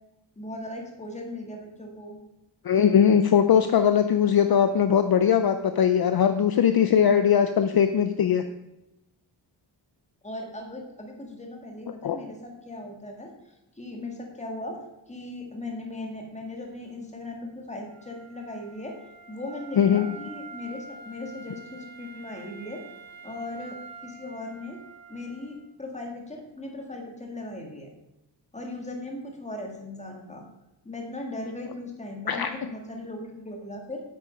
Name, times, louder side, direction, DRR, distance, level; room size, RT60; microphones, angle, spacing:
voice 1, 0.4-2.2 10.2-13.3 13.8-14.8 15.1-19.0 19.3-22.8 23.2-24.8 25.1-27.9 28.5-30.4 30.8-34.0, left 2 dB, 15° left, 1 dB, 1.8 m, -38 dB
voice 2, 2.6-8.4 12.0-12.2 19.8-20.1 32.3-32.5, left 8 dB, 55° left, 9 dB, 0.5 m, -20 dB
Wind instrument woodwind instrument, 17.9-25.7, right 4 dB, 85° right, 1.7 m, -46 dB
8.6 x 8.5 x 5.2 m, 0.91 s
wide cardioid pair, 180°, 45 cm